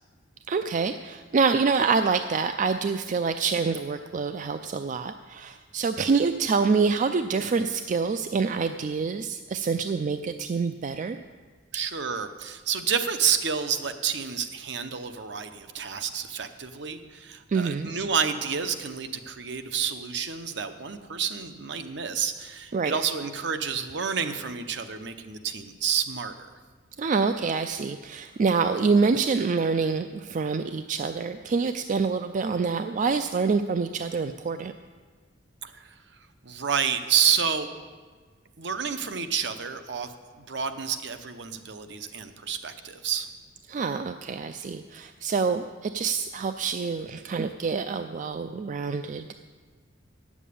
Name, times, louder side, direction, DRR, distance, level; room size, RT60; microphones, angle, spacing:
voice 1, 0.5-11.2 11.7-11.8 17.5-17.9 22.7-23.0 27.0-34.7 43.7-49.3, right 5 dB, 45° right, 9 dB, 0.4 m, -26 dB
voice 2, 11.7-26.3 35.6-35.9 36.4-37.7 38.6-40.1 40.5-43.3, right 7 dB, 70° right, 9 dB, 0.8 m, -29 dB
9.3 x 7.2 x 8.5 m, 1.5 s
head